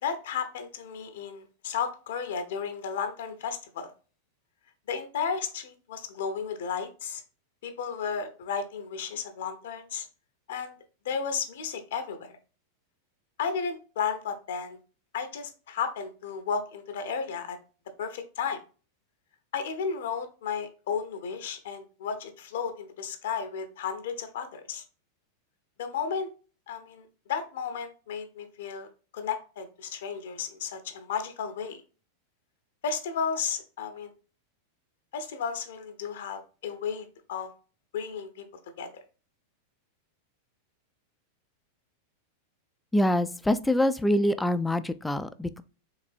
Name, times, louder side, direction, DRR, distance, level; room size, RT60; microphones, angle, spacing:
voice 1, 0.0-3.9 4.9-7.2 7.6-10.1 10.5-10.7 11.0-12.3 13.4-14.8 15.1-17.6 18.0-18.6 19.5-24.8 25.8-26.3 26.7-28.9 29.1-31.8 32.8-34.1 35.1-37.5 37.9-38.4 38.8-38.9, left 6 dB, 60° left, 8 dB, 0.7 m, -33 dB
voice 2, 42.9-45.6, left 1 dB, 5° left, 13 dB, 0.3 m, -25 dB
4.8 x 3.3 x 2.5 m, 0.35 s
figure-of-eight pair, 90°, 0 cm